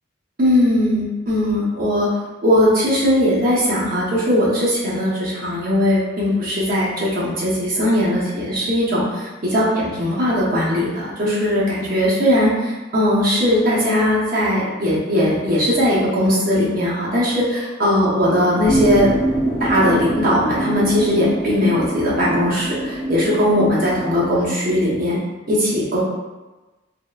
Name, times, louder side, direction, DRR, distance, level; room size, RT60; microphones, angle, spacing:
voice 1, 0.4-2.1 2.4-19.1 19.6-25.2 25.4-26.0, left 1 dB, 50° right, -7 dB, 0.9 m, -19 dB
sound 1, 18.6-25.2, right 1 dB, 15° left, 0.8 m, -25 dB
3.8 x 2.0 x 2.3 m, 1.2 s
head